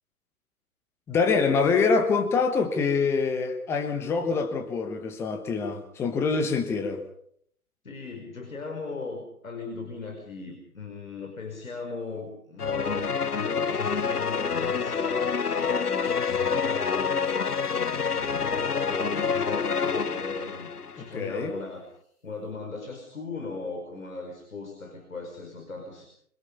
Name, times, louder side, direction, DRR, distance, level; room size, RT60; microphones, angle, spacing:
voice 1, 1.1-7.0 21.0-21.5, left 4 dB, 5° left, 1.2 m, -25 dB
voice 2, 7.8-17.4 17.7-21.9 22.2-26.1, left 3 dB, 60° left, 5.2 m, -37 dB
sound 1, 12.6-21.1, left 6 dB, 85° left, 0.9 m, -27 dB
25.0 x 23.0 x 5.5 m
figure-of-eight pair, 135°, 44 cm